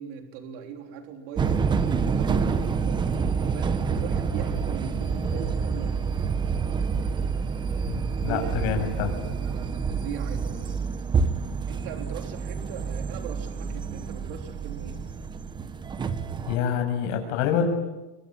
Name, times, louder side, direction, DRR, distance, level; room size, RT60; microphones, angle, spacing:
voice 1, 0.0-6.1 8.2-10.8 11.7-15.0, right 8 dB, 50° right, 4 dB, 3.7 m, -40 dB
sound 1, 1.4-16.6, right 5 dB, 15° right, 1.0 m, -28 dB
voice 2, 7.8-9.1 16.4-17.7, left 8 dB, 50° left, 4 dB, 7.3 m, -27 dB
26.5 x 24.5 x 9.0 m, 1.1 s
supercardioid pair, 165°, 34 cm